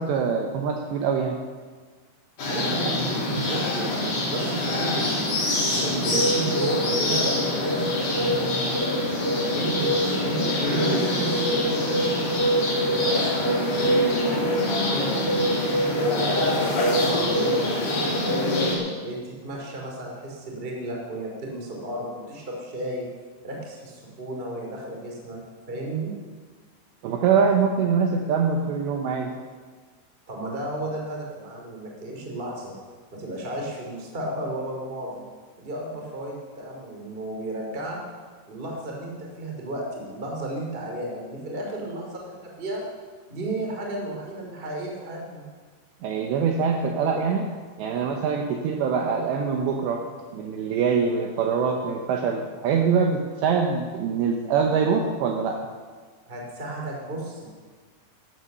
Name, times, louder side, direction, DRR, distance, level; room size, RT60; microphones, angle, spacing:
voice 1, 0.0-1.4 2.8-2.9 3.4-3.5 27.0-29.3 46.0-47.5 47.8-50.0 50.3-55.6, right 6 dB, 75° right, 2 dB, 2.7 m, -24 dB
sound 1, 2.4-18.8, left 1 dB, 35° left, 3.9 m, -24 dB
voice 2, 2.4-5.4 5.8-8.9 9.4-13.5 13.8-14.6 14.9-15.4 15.9-18.7 19.0-23.0 23.4-25.4 25.7-26.1 30.3-32.7 33.1-35.2 35.6-38.0 38.5-42.8 43.3-45.4 47.9-48.2 56.3-57.5, right 1 dB, 20° right, -1 dB, 1.6 m, -34 dB
12.0 x 11.0 x 6.7 m, 1.5 s
omnidirectional pair, 5.8 m